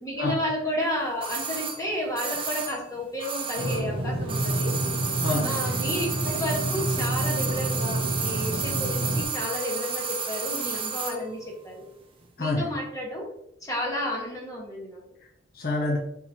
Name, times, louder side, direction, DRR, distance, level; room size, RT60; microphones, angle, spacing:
voice 1, 0.0-4.7 5.4-11.8 12.4-13.3 13.6-15.0, left 1 dB, 15° left, -2 dB, 1.1 m, -31 dB
sound 1, 1.2-4.0 4.2-11.2 11.5-11.6, right 5 dB, 25° right, 0.5 m, -32 dB
sound 2, 3.6-9.2, right 1 dB, 85° right, 0.7 m, -29 dB
voice 2, 5.2-5.8 12.4-12.8 15.2-16.0, left 2 dB, 50° left, -1 dB, 0.6 m, -28 dB
3.8 x 3.0 x 4.3 m, 0.78 s
head